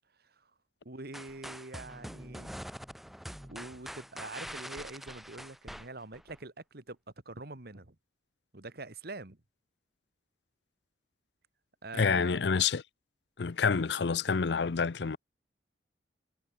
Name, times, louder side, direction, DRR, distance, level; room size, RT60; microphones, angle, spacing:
voice 1, 0.2-0.5 0.8-2.6 3.4-7.0 7.3-8.0 8.5-9.4 11.8-12.4, right 2 dB, 60° right, 1.9 m, -45 dB
sound 1, 1.1-6.4, equal, ahead, 1.5 m, -44 dB
voice 2, 11.9-12.8 13.4-15.2, left 5 dB, 65° left, 0.6 m, -28 dB
head